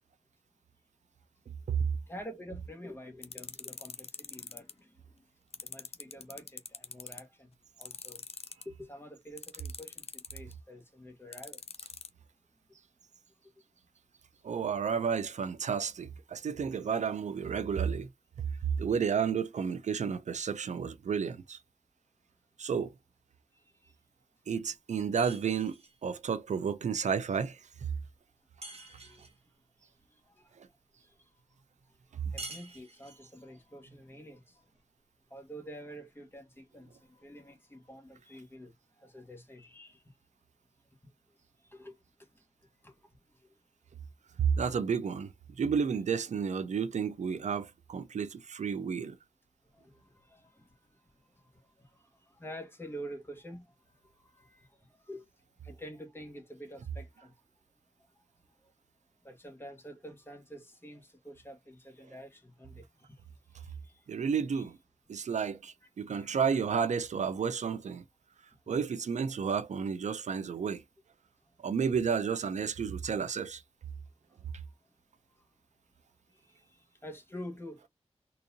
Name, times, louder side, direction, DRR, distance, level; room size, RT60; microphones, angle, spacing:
voice 1, 2.1-4.9 5.6-7.5 7.8-11.6 23.8-23.9 28.6-29.3 30.4-30.5 32.1-34.6 35.3-40.0 41.6-41.9 42.8-42.9 49.7-50.6 51.8-53.7 54.3-54.7 55.1-55.2 55.6-57.3 58.6-58.7 59.2-63.1 63.8-63.9 64.5-64.6 66.1-66.6 76.4-76.7 77.0-77.8, equal, 20° left, 1.3 m, -48 dB
sound 1, 3.2-4.7 5.5-7.2 7.8-8.6 9.4-10.5 11.3-12.1, left 5 dB, 60° left, 0.6 m, -42 dB
voice 2, 14.4-18.1 18.8-21.6 22.6-22.9 24.5-25.8 26.0-27.6 30.6-30.7 44.4-45.3 45.6-49.2 64.1-64.8 65.1-68.0 68.7-70.8 71.6-73.6, right 6 dB, 85° right, 0.5 m, -31 dB
sound 2, 25.2-26.0 28.6-29.4 32.4-33.3, right 2 dB, 60° right, 1.2 m, -46 dB
3.9 x 2.6 x 2.7 m
wide cardioid pair, 105°, 12 cm